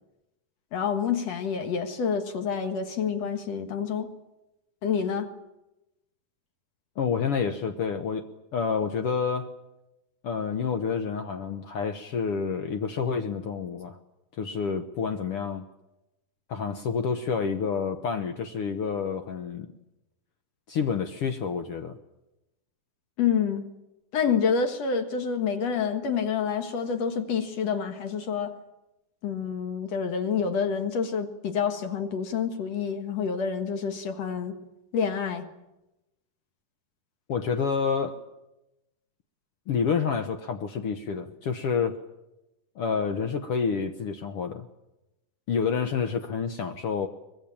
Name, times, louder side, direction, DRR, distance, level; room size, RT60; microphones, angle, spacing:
voice 1, 0.7-4.1 4.8-5.3 23.2-23.7 24.1-28.6 29.2-34.5 34.9-35.5, left 6 dB, 55° left, 2.4 m, -28 dB
voice 2, 7.0-8.3 8.5-9.5 10.2-14.0 14.4-15.6 16.5-19.7 20.7-22.0 37.3-38.2 39.7-42.0 42.8-44.7 45.5-47.1, left 6 dB, 85° left, 1.2 m, -28 dB
23.5 x 21.5 x 8.7 m
omnidirectional pair, 4.2 m